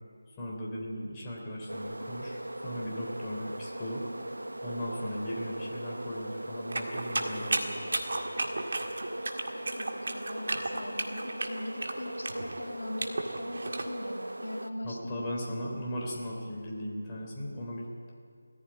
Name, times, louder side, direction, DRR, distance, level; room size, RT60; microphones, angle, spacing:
voice 1, 0.4-4.0 4.6-7.9 14.8-18.1, equal, 20° left, -3 dB, 3.6 m, -37 dB
sound 1, 1.7-14.7, right 1 dB, 80° right, 1.3 m, -39 dB
sound 2, 6.7-13.9, right 2 dB, 55° right, 1.9 m, -34 dB
voice 2, 9.5-15.3, left 1 dB, 60° left, 1 dB, 2.9 m, -41 dB
18.0 x 15.0 x 10.0 m, 2.2 s
figure-of-eight pair, 160°, 0 cm